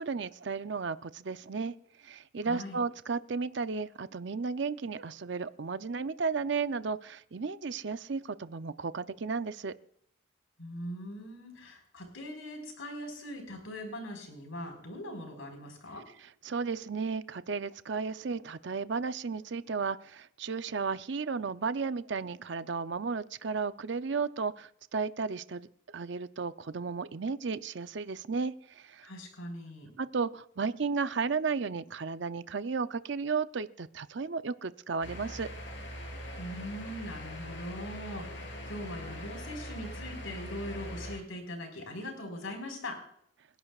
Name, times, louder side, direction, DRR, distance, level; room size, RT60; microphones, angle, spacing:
voice 1, 0.0-1.7 2.0-9.7 16.4-25.7 25.9-29.1 30.0-35.5, right 5 dB, 60° right, 13 dB, 0.5 m, -34 dB
voice 2, 2.4-2.8 10.6-16.1 29.0-29.9 36.4-43.0, left 1 dB, 85° left, 3 dB, 4.6 m, -41 dB
sound 1, 35.0-41.2, equal, 60° left, 3.9 m, -42 dB
28.0 x 11.0 x 2.4 m, 0.70 s
head